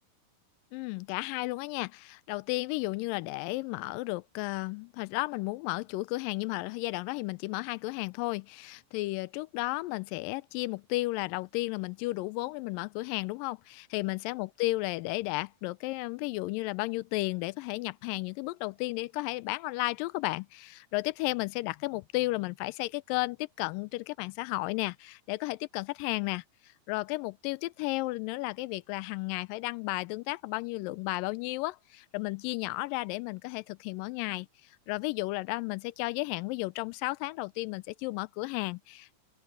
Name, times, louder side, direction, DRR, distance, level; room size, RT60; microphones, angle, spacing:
voice 1, 0.7-26.4 26.9-34.5 34.9-39.2, left 21 dB, 80° left, 2.2 m, -33 dB
open air
omnidirectional pair, 4.0 m